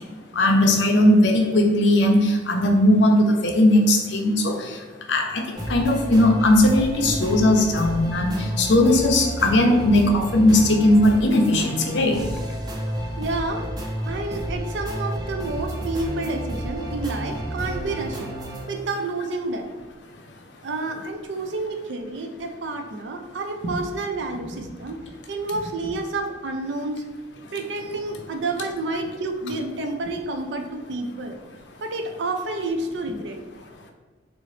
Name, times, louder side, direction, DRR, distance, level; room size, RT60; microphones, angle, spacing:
voice 1, 0.3-4.7 5.1-12.2, left 1 dB, 75° left, 3 dB, 0.5 m, -18 dB
sound 1, 5.5-18.6, right 1 dB, 20° right, 0.5 m, -31 dB
voice 2, 13.2-13.7 14.1-18.3 18.7-19.7 20.6-25.0 25.3-27.0 27.5-31.4 31.8-33.4, right 2 dB, 75° right, 5 dB, 0.4 m, -29 dB
3.7 x 2.0 x 3.1 m, 1.3 s
head